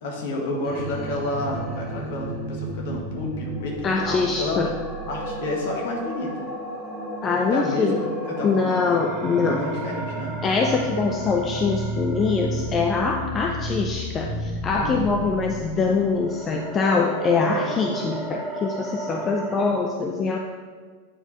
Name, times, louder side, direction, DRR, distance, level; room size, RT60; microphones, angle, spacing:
voice 1, 0.0-4.6 5.1-6.3 7.5-8.8 9.4-10.3 14.7-15.0 17.6-18.0 19.1-19.2, left 1 dB, 55° left, -1 dB, 1.6 m, -30 dB
sound 1, 0.6-19.7, right 1 dB, 10° right, 1.6 m, -32 dB
voice 2, 3.8-4.7 7.2-8.0 8.4-9.6 10.4-20.4, left 4 dB, 25° left, 2 dB, 0.5 m, -23 dB
8.8 x 4.8 x 3.9 m, 1.5 s
figure-of-eight pair, 90°, 0 cm